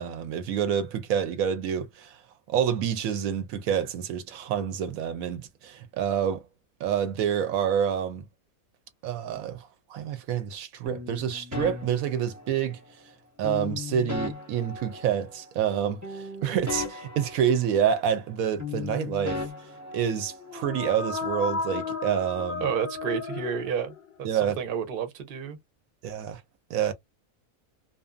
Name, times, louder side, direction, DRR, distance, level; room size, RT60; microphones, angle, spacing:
voice 1, 0.0-2.2 2.5-6.4 6.8-8.2 9.0-12.8 13.4-19.4 19.9-22.7 24.2-24.6 26.0-26.4 26.7-26.9, right 8 dB, 75° right, 1.0 m, -28 dB
sound 1, 10.9-12.8 13.4-15.7 16.0-18.3 18.6-20.7, left 4 dB, 15° right, 0.8 m, -37 dB
sound 2, 20.4-24.2, left 4 dB, 60° left, 0.7 m, -33 dB
voice 2, 22.6-25.6, right 8 dB, 50° right, 0.8 m, -31 dB
2.6 x 2.3 x 2.3 m
omnidirectional pair, 1.5 m